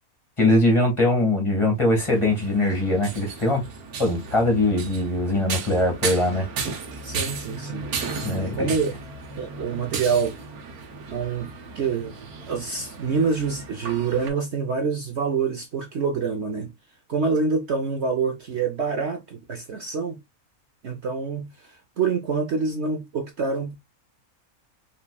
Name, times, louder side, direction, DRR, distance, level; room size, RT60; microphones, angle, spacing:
voice 1, 0.4-3.6 4.0-6.5 8.2-8.7, left 1 dB, 20° left, 1.8 m, -21 dB
sound 1, 1.9-14.3, right 4 dB, 85° right, 1.4 m, -35 dB
voice 2, 7.0-7.9 8.3-8.9 9.3-10.4 11.1-16.7 17.1-20.2 20.8-23.8, right 5 dB, 55° right, 1.0 m, -26 dB
5.7 x 3.4 x 2.3 m
omnidirectional pair, 1.6 m